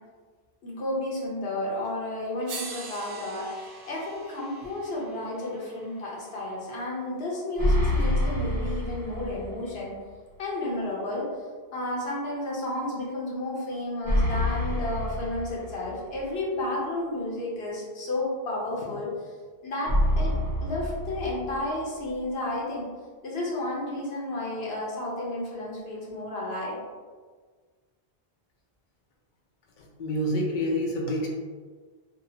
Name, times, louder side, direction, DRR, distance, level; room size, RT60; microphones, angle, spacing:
voice 1, 0.6-9.9 10.4-11.3 11.7-19.1 19.6-20.4 20.6-22.9 23.2-26.8, left 1 dB, 75° left, -4 dB, 1.0 m, -32 dB
sound 1, 1.8-1.9 2.5-6.7 8.0-8.1, right 4 dB, 80° right, 0.8 m, -43 dB
sound 2, 7.6-9.6 9.9-10.0 14.0-16.0 19.9-21.8, left 1 dB, 10° right, 1.0 m, -26 dB
voice 2, 29.8-31.3, equal, 60° left, -1 dB, 0.6 m, -28 dB
2.7 x 2.2 x 2.7 m, 1.5 s
omnidirectional pair, 1.0 m